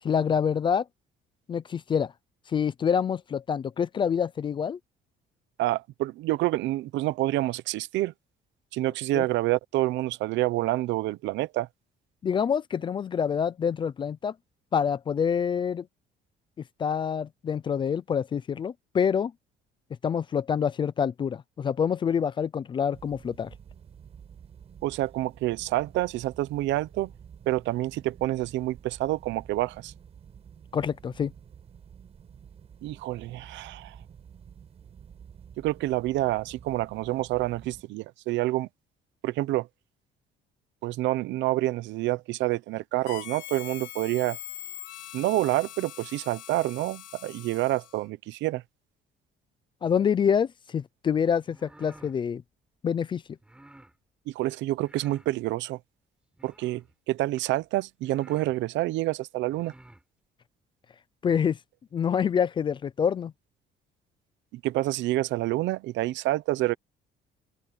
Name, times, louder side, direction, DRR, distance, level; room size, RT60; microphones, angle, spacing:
voice 1, 0.0-0.8 1.5-2.1 2.5-4.8 9.1-9.2 12.2-14.3 14.7-15.8 16.8-19.3 20.0-23.5 30.7-31.3 49.8-52.4 52.8-53.2 61.2-61.6 61.9-63.3, left 7 dB, 25° left, 0.5 m, -26 dB
voice 2, 5.6-8.1 8.7-11.7 24.8-27.1 27.5-29.9 32.8-34.0 35.6-38.7 39.2-39.7 40.8-44.4 45.1-48.6 54.3-55.8 56.4-59.7 64.5-66.7, right 17 dB, 80° right, 0.8 m, -28 dB
sound 1, 22.9-37.8, right 7 dB, 35° right, 5.3 m, -50 dB
Harmonica, 43.0-48.1, left 14 dB, 90° left, 4.2 m, -43 dB
sound 2, 51.4-52.2 53.4-53.9 54.8-55.3 56.3-56.9 57.6-57.7 58.0-58.6 59.4-60.0, right 1 dB, 5° right, 5.7 m, -53 dB
open air
cardioid pair, 180°, 19 cm